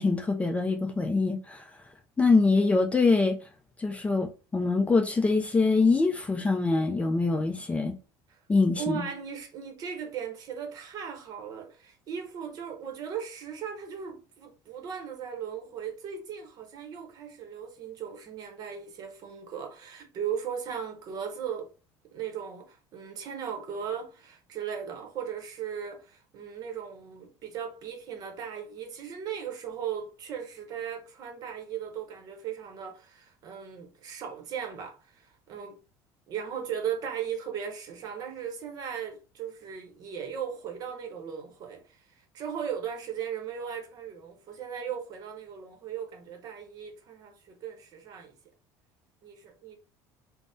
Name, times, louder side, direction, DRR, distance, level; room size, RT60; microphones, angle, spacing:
voice 1, 0.0-1.7 2.2-3.4 3.8-7.9 8.5-9.1, left 3 dB, 15° left, 0.4 m, -24 dB
voice 2, 8.8-21.7 22.1-35.8 36.3-42.0 42.3-48.3 49.2-49.8, right 8 dB, 45° right, 0.8 m, -37 dB
3.3 x 2.0 x 2.6 m
cardioid pair, 125°, 9 cm